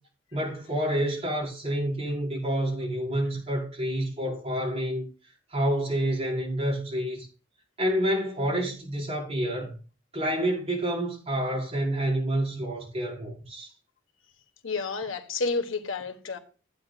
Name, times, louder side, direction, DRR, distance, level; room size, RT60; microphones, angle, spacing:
voice 1, 0.3-5.1 5.5-7.3 7.8-9.7 10.1-13.7, right 1 dB, 30° right, 5.1 m, -28 dB
voice 2, 14.6-16.4, left 3 dB, 90° left, 1.5 m, -30 dB
14.5 x 9.1 x 2.5 m
head